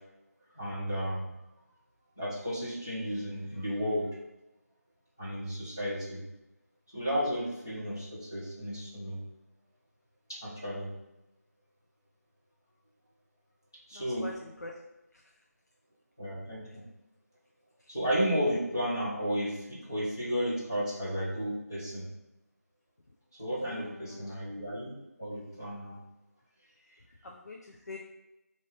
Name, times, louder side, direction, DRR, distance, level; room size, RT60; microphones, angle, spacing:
voice 1, 0.6-1.3 2.2-4.1 5.2-6.2 6.9-9.2 10.3-10.9 13.9-14.3 16.2-16.9 17.9-22.1 23.4-26.0, equal, 10° left, -8 dB, 0.4 m, -33 dB
voice 2, 13.9-14.7 15.1-15.2 17.8-17.9 23.1-23.2 23.6-24.3 27.2-28.0, left 2 dB, 75° left, -1 dB, 0.6 m, -45 dB
4.9 x 2.7 x 3.1 m, 0.95 s
figure-of-eight pair, 175°, 9 cm